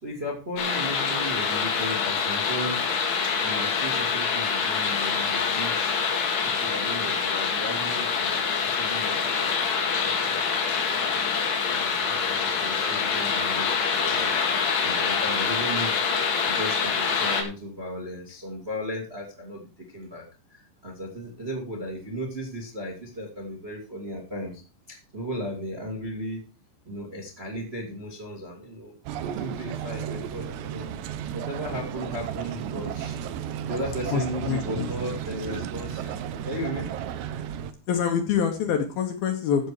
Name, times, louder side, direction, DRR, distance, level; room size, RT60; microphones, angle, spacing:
voice 1, 0.0-2.9 3.4-5.9 6.4-11.3 11.7-16.1 16.4-24.6 24.9-26.4 26.8-30.9 31.3-33.2 33.6-36.2 36.4-36.9, equal, 25° right, 1 dB, 1.5 m, -36 dB
sound 1, 0.6-17.4, left 5 dB, 90° left, 4.5 m, -25 dB
sound 2, 29.1-37.7, right 9 dB, 75° right, 2.9 m, -33 dB
voice 2, 34.1-34.9 37.9-39.7, left 7 dB, 65° left, 5 dB, 2.7 m, -26 dB
15.0 x 6.4 x 4.8 m, 0.33 s
omnidirectional pair, 5.3 m